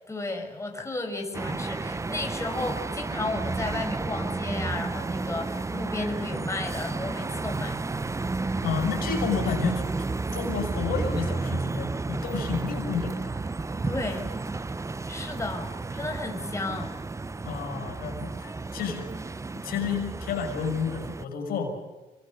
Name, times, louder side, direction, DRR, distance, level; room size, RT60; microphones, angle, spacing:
voice 1, 0.1-7.8 13.8-14.3 14.6-14.7 15.1-16.9, left 2 dB, 20° left, 4 dB, 6.0 m, -33 dB
sound 1, 1.3-21.2, right 3 dB, 20° right, 0.8 m, -32 dB
voice 2, 8.6-9.8 10.3-13.3 17.5-19.1 19.6-21.8, left 6 dB, 75° left, 4 dB, 6.4 m, -31 dB
25.0 x 23.5 x 6.5 m, 1.2 s
supercardioid pair, 65°, 16 cm